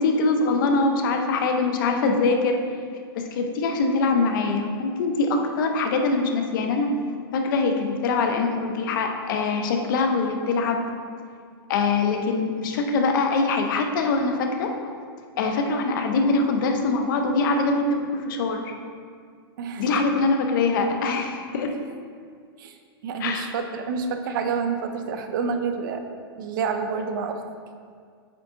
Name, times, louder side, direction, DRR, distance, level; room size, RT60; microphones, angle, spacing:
voice 1, 0.0-2.6 3.2-6.9 7.3-10.8 11.7-14.7 15.4-18.7 19.8-21.7 23.2-23.5, left 3 dB, 55° left, 4 dB, 0.7 m, -23 dB
voice 2, 23.0-26.0 26.4-27.4, right 5 dB, 55° right, 6 dB, 0.6 m, -28 dB
8.3 x 3.6 x 3.8 m, 2.1 s
supercardioid pair, 155°, 13 cm